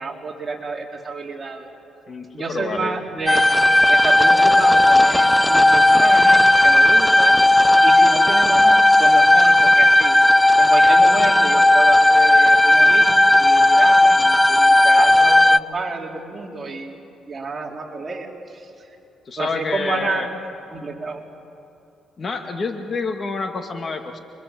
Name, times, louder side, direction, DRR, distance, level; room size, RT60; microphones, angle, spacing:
voice 1, 0.0-1.7 2.3-3.4 3.9-7.3 7.8-10.2 10.6-17.0 17.3-18.9 19.4-20.3 20.7-21.2, right 3 dB, 30° right, 0 dB, 4.0 m, -29 dB
voice 2, 2.1-3.0 19.3-20.3 22.2-24.2, left 4 dB, 40° left, 6 dB, 1.9 m, -28 dB
sound 1, 3.3-15.6, left 1 dB, 5° left, 0.5 m, -14 dB
30.0 x 24.0 x 7.6 m, 2.7 s
cardioid pair, 90°, 0 cm